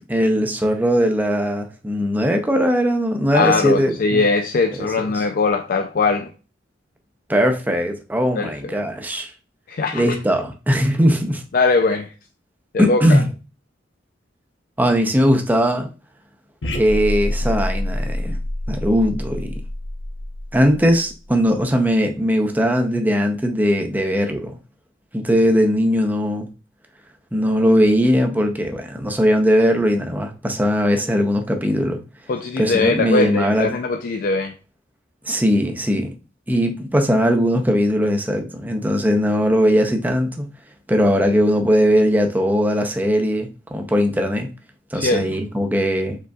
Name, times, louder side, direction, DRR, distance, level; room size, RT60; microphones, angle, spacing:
voice 1, 0.1-4.2 4.8-4.9 5.1-5.2 7.3-9.3 9.9-11.4 12.8-13.3 14.8-15.9 16.7-18.4 18.7-19.5 20.5-24.5 25.1-26.5 27.3-32.0 32.6-33.7 35.3-36.1 36.5-40.5 40.9-44.5 44.9-46.2, equal, 10° right, 0.6 m, -19 dB
voice 2, 3.3-6.3 8.4-8.5 9.7-10.0 11.5-12.1 12.7-13.2 32.3-34.5 44.9-45.3, left 3 dB, 50° left, 0.4 m, -20 dB
sound 1, 16.6-21.3, left 1 dB, 70° left, 0.7 m, -27 dB
5.1 x 3.8 x 2.3 m
head